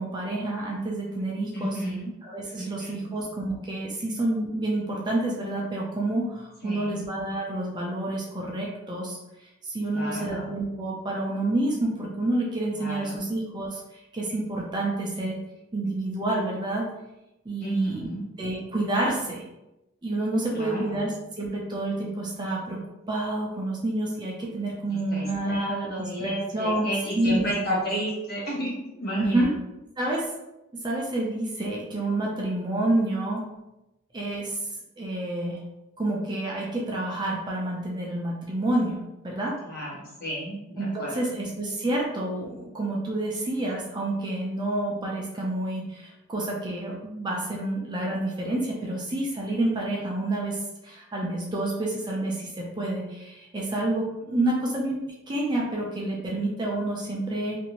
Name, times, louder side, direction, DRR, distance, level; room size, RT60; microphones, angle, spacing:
voice 1, 0.0-9.2 9.6-13.8 14.1-15.4 15.7-16.9 17.5-18.1 18.4-19.4 20.0-22.8 23.1-26.9 27.2-27.5 29.2-29.5 30.0-30.3 30.7-33.4 34.1-34.6 35.0-35.6 36.0-39.5 40.8-50.6 50.8-57.6, right 1 dB, 20° right, -2 dB, 0.4 m, -29 dB
voice 2, 1.5-2.1 2.6-3.1 6.6-7.0 9.9-10.5 12.8-13.3 17.6-18.2 20.5-20.9 24.9-29.5 39.6-41.3, right 1 dB, 50° left, -7 dB, 1.2 m, -31 dB
2.6 x 2.5 x 2.9 m, 0.92 s
head